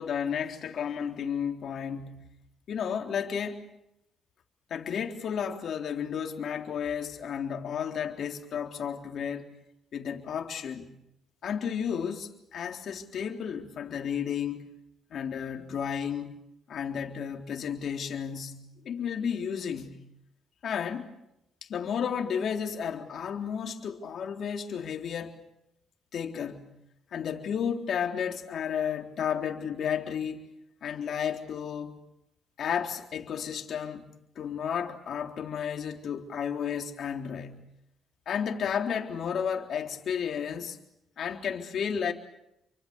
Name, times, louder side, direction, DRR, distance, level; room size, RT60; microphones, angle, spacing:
voice 1, 0.0-2.2 2.7-3.7 4.7-9.5 9.9-10.9 11.4-14.7 15.1-16.4 16.7-18.6 18.8-20.0 20.6-21.1 21.6-25.4 26.1-26.6 27.1-30.5 30.8-32.0 32.6-37.6 38.3-40.8 41.2-42.1, left 7 dB, 65° left, 3.7 m, -32 dB
29.5 x 24.5 x 7.0 m
cardioid pair, 90°, 0 cm